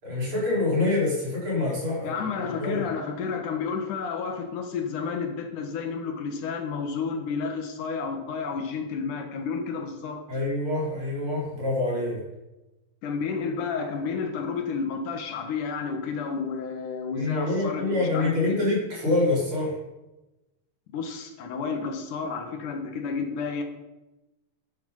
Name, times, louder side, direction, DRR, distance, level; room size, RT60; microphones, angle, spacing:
voice 1, 0.0-2.2 2.6-2.9 10.3-12.2 17.1-19.8, left 2 dB, 40° right, -4 dB, 5.1 m, -26 dB
voice 2, 2.0-10.2 13.0-18.5 20.9-23.6, left 5 dB, 75° left, 5 dB, 3.0 m, -31 dB
12.0 x 11.0 x 5.6 m, 1.0 s
omnidirectional pair, 3.7 m